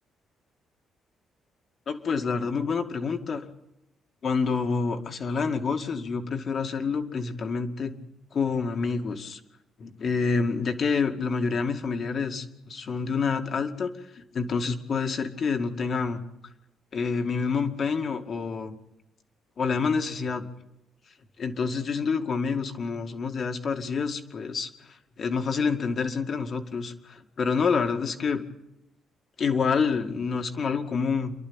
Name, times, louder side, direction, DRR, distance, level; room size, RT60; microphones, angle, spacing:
voice 1, 1.9-3.5 4.2-7.9 8.3-9.4 9.8-16.2 16.9-18.8 19.6-20.4 21.4-28.4 29.4-31.3, left 5 dB, 50° left, 5 dB, 2.1 m, -28 dB
28.5 x 11.5 x 8.9 m, 0.90 s
cardioid pair, 90°, 0 cm